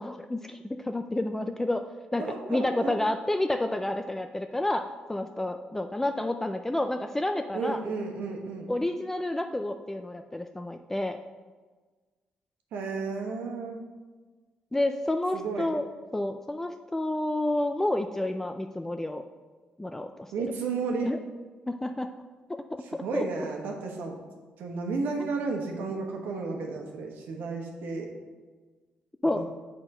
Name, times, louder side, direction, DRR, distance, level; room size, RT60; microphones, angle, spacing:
voice 1, 0.0-2.2 2.5-7.8 8.7-11.2 14.7-15.9 16.1-19.2 19.8-20.3 21.0-21.2 21.7-22.1 22.9-23.2 25.2-25.3 29.2-29.4, left 1 dB, 10° left, 7 dB, 0.3 m, -30 dB
voice 2, 2.2-2.9 7.5-8.7 12.7-13.8 15.3-15.7 20.3-21.1 23.0-24.1 24.6-28.1 29.3-29.4, right 4 dB, 85° right, 2 dB, 1.2 m, -32 dB
6.8 x 4.3 x 5.4 m, 1.4 s
cardioid pair, 80°, 3 cm